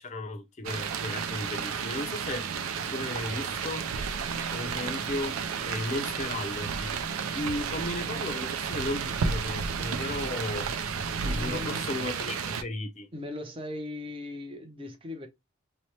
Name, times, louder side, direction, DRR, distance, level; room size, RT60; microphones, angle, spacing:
voice 1, 0.0-2.5 2.9-3.9 4.5-6.9 7.3-10.7 11.2-13.1, left 2 dB, 35° left, 0.5 m, -35 dB
sound 1, 0.6-12.6, right 6 dB, 80° right, 0.4 m, -32 dB
voice 2, 11.3-11.9 13.1-15.3, left 1 dB, 25° right, 0.6 m, -38 dB
2.9 x 2.0 x 2.9 m
head